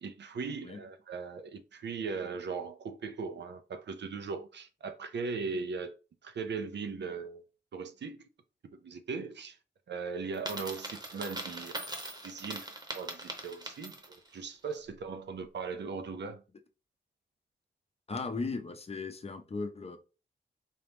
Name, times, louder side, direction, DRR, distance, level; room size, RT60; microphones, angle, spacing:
voice 1, 0.0-5.9 6.2-7.4 7.7-8.3 8.7-9.6 9.9-11.7 12.2-12.7 12.9-16.4, right 4 dB, 75° right, 0.6 m, -39 dB
Coin (dropping), 10.3-14.3, right 1 dB, 25° right, 0.9 m, -41 dB
voice 2, 18.1-20.0, left 3 dB, 35° left, 0.6 m, -37 dB
4.1 x 2.9 x 3.4 m
wide cardioid pair, 135°, 18 cm